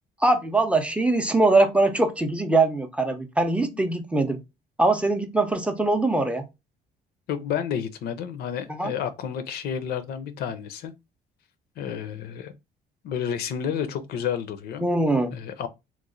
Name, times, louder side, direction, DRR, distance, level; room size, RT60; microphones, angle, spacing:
voice 1, 0.2-4.4 4.8-6.5 8.7-8.9 14.8-15.3, right 2 dB, 5° right, 0.5 m, -22 dB
voice 2, 7.3-10.9 11.8-12.5 13.0-14.8 15.3-15.7, left 8 dB, 70° left, 0.5 m, -30 dB
3.0 x 2.1 x 3.7 m
cardioid pair, 110°, 17 cm